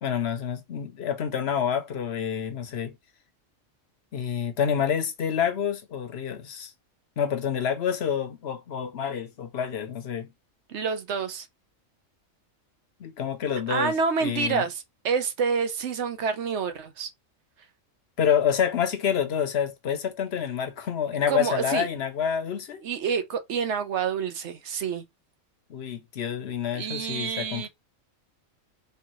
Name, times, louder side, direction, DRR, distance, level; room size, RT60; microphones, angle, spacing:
voice 1, 0.0-3.0 4.1-6.7 7.2-10.3 13.0-13.9 14.2-14.6 18.2-22.8 25.7-27.7, left 8 dB, 55° left, 0.9 m, -28 dB
voice 2, 10.7-11.5 13.7-17.1 21.3-21.9 22.8-25.0 26.7-27.7, right 6 dB, 60° right, 1.0 m, -28 dB
4.3 x 2.9 x 3.0 m
omnidirectional pair, 1.4 m